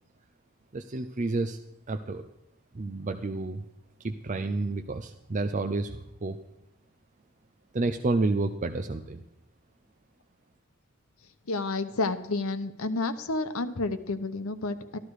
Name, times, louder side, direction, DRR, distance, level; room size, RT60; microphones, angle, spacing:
voice 1, 0.7-1.6 1.9-2.3 2.7-3.7 4.0-6.4 7.7-9.2, right 3 dB, 35° right, 6 dB, 0.6 m, -30 dB
voice 2, 11.5-15.0, left 3 dB, 90° left, 9 dB, 0.9 m, -30 dB
13.5 x 12.0 x 4.8 m, 0.88 s
head